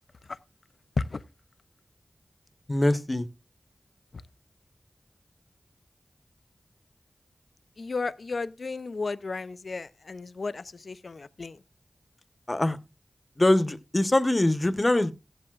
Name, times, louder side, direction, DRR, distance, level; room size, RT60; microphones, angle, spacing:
voice 1, 2.7-3.3 12.5-12.8 13.4-15.1, left 1 dB, 35° left, 1.1 m, -23 dB
voice 2, 7.8-11.6, left 3 dB, 75° left, 0.6 m, -33 dB
15.0 x 12.5 x 2.4 m
cardioid pair, 50°, 0 cm